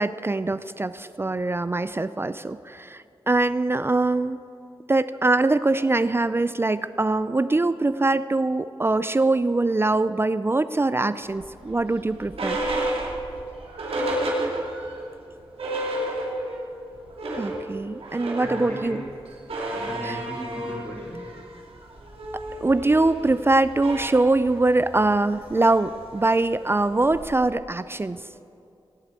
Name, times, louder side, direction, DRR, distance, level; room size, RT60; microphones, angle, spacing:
voice 1, 0.0-4.4 4.9-12.6 17.4-19.0 20.0-20.2 22.3-28.2, right 2 dB, 25° right, 14 dB, 0.4 m, -23 dB
sound 1, 11.3-15.0 15.3-15.4 15.6-16.7 17.0-27.4, right 1 dB, 80° right, 2.6 m, -32 dB
voice 2, 18.4-19.0 19.7-21.2, equal, 25° left, -5 dB, 2.7 m, -36 dB
17.0 x 7.9 x 8.9 m, 2.6 s
wide cardioid pair, 85°, 10 cm